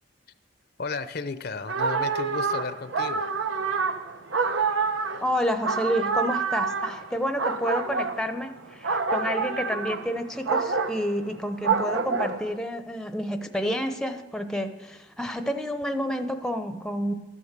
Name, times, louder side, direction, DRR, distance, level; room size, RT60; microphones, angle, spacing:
voice 1, 0.8-3.3, left 4 dB, 55° left, 12 dB, 0.7 m, -33 dB
sound 1, 1.7-12.6, right 5 dB, 80° right, 0.9 m, -27 dB
voice 2, 5.2-17.1, equal, 5° left, 7 dB, 0.7 m, -29 dB
14.0 x 11.5 x 6.7 m, 1.1 s
head